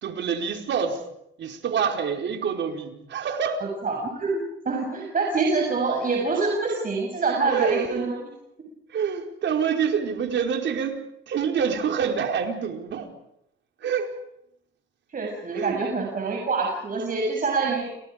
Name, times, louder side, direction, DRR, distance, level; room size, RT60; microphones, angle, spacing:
voice 1, 0.0-1.0 1.4-3.6 7.5-8.0 8.9-13.1 13.8-14.1 15.5-15.8, right 7 dB, 65° right, 4 dB, 4.7 m, -26 dB
voice 2, 3.8-4.4 4.6-8.2 15.1-17.9, right 4 dB, 45° right, 0 dB, 7.5 m, -25 dB
30.0 x 29.5 x 5.2 m, 0.79 s
cardioid pair, 90°, 20 cm